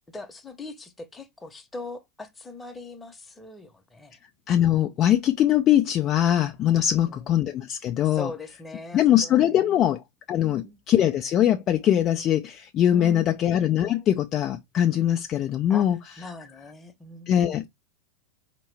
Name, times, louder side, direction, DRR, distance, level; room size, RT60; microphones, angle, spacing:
voice 1, 0.1-4.2 6.9-7.3 8.1-9.8 10.4-10.8 12.9-13.3 15.7-15.9 16.2-17.7, left 2 dB, 10° left, 0.9 m, -41 dB
voice 2, 4.5-8.3 8.9-10.0 10.3-16.0 17.3-17.7, left 11 dB, 30° left, 0.4 m, -22 dB
4.5 x 2.9 x 3.3 m
figure-of-eight pair, 90°, 0 cm